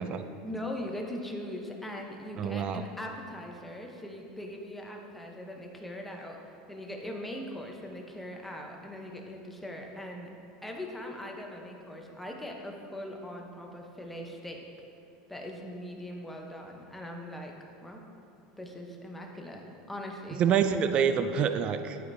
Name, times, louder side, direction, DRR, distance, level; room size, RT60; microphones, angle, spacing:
voice 1, 0.4-6.4 6.7-10.3 10.6-14.7 15.3-17.5 17.8-18.0 18.6-20.4, left 1 dB, 5° left, 1 dB, 0.8 m, -40 dB
voice 2, 2.4-2.9 20.4-22.1, right 7 dB, 35° right, 9 dB, 0.3 m, -27 dB
11.5 x 5.1 x 2.7 m, 2.6 s
supercardioid pair, 130°, 3 cm